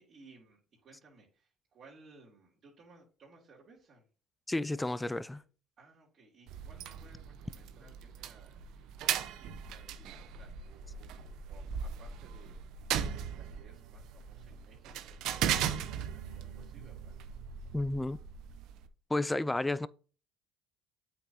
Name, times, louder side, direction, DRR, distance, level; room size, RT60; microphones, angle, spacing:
voice 1, 0.0-4.1 5.8-17.2, right 3 dB, 45° right, 2.8 m, -60 dB
voice 2, 4.5-5.4 17.7-18.2 19.1-19.9, left 2 dB, 10° left, 0.4 m, -31 dB
sound 1, 6.5-18.9, right 9 dB, 65° right, 0.8 m, -38 dB
8.3 x 5.8 x 2.8 m
supercardioid pair, 75°, 0 cm